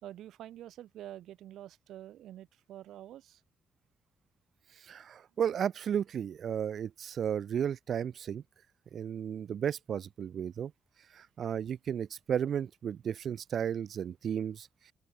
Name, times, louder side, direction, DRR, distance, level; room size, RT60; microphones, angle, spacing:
voice 1, 0.0-3.4, right 12 dB, 90° right, 4.5 m, -47 dB
voice 2, 4.8-8.4 8.9-10.7 11.1-14.7, right 8 dB, 55° right, 0.4 m, -34 dB
open air
cardioid pair, 150°, 0 cm